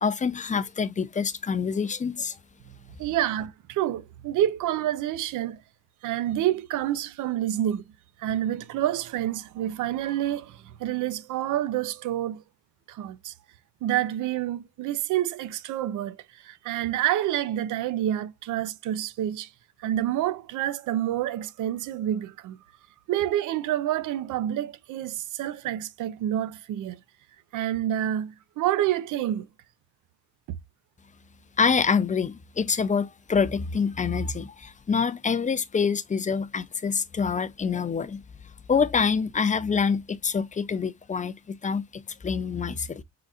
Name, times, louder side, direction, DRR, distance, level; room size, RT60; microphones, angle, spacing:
voice 1, 0.0-2.4 31.6-38.2 38.7-43.0, left 5 dB, 25° left, 0.5 m, -26 dB
voice 2, 3.0-5.6 6.0-7.8 8.2-12.4 12.9-13.3 13.8-16.2 16.4-19.5 19.8-22.6 23.1-27.0 27.5-29.5 30.5-30.6, right 12 dB, 80° right, 0.6 m, -28 dB
4.2 x 3.9 x 2.4 m
cardioid pair, 90°, 30 cm